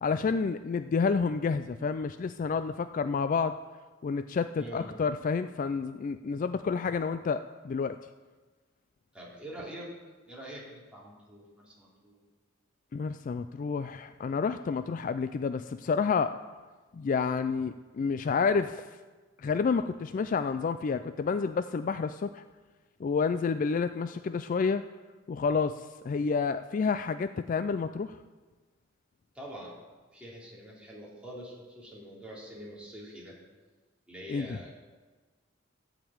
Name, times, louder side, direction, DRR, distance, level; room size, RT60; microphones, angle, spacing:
voice 1, 0.0-3.5 4.0-8.0 12.9-16.4 16.9-18.9 19.4-22.4 23.0-24.8 25.3-28.2 34.3-34.6, left 5 dB, 40° left, 11 dB, 0.3 m, -29 dB
voice 2, 9.1-9.9 10.3-12.2 29.3-29.8 30.1-33.3 34.1-34.8, equal, 5° right, -6 dB, 3.1 m, -45 dB
14.0 x 5.1 x 8.7 m, 1.3 s
head